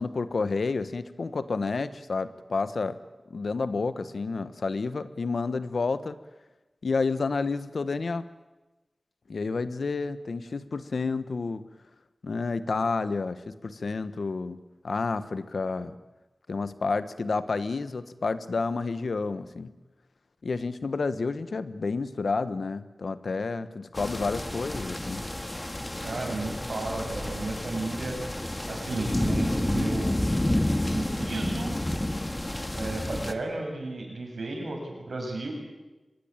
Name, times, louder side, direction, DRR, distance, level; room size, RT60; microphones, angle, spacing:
voice 1, 0.0-3.0 3.3-6.2 6.8-8.3 9.3-11.6 12.2-16.0 16.5-19.7 20.4-25.3, left 4 dB, 85° left, 13 dB, 1.2 m, -30 dB
sound 1, 23.9-33.3, left 1 dB, 25° left, 1.9 m, -30 dB
voice 2, 26.0-28.2 28.7-30.2 30.9-31.8 32.7-35.5, right 2 dB, 85° right, 2 dB, 7.4 m, -33 dB
24.5 x 21.0 x 9.0 m, 1.1 s
wide cardioid pair, 60°, 0 cm